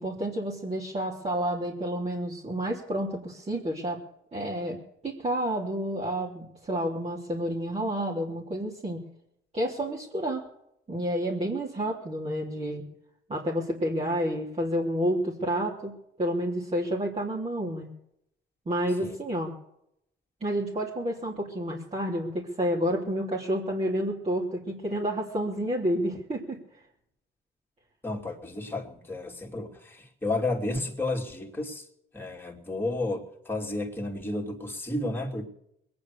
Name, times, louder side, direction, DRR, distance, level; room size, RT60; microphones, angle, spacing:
voice 1, 0.0-4.0 4.3-9.0 9.5-10.4 10.9-12.8 13.3-15.9 16.2-17.9 18.6-19.5 20.4-26.6, equal, 30° right, -4 dB, 3.3 m, -30 dB
voice 2, 28.0-31.8 32.1-35.5, left 2 dB, 10° left, 0 dB, 3.0 m, -32 dB
21.5 x 9.7 x 6.7 m, 0.77 s
cardioid pair, 90°, 20 cm